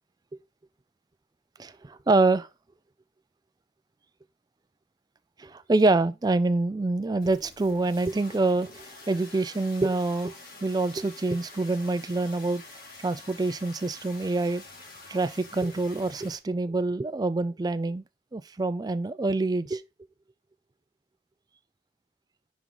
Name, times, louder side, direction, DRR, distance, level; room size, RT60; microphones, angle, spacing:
voice 1, 1.6-2.5 5.4-10.3 10.6-12.6 13.0-14.6 15.1-18.0 18.3-19.8, right 2 dB, 20° right, 0.4 m, -26 dB
sound 1, 7.2-16.4, left 3 dB, 55° left, 2.0 m, -47 dB
5.4 x 5.1 x 4.6 m
head